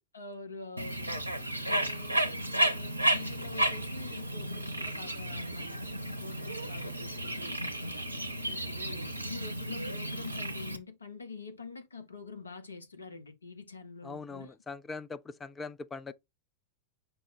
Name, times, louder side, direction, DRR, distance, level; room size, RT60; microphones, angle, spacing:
voice 1, 0.1-1.4 1.6-8.1 8.4-14.5, left 4 dB, 75° left, 0.8 m, -46 dB
Bird, 0.8-10.8, right 1 dB, 85° right, 0.6 m, -33 dB
voice 2, 14.0-16.1, left 4 dB, 15° left, 0.3 m, -41 dB
5.3 x 2.0 x 4.3 m
figure-of-eight pair, 90°, 0 cm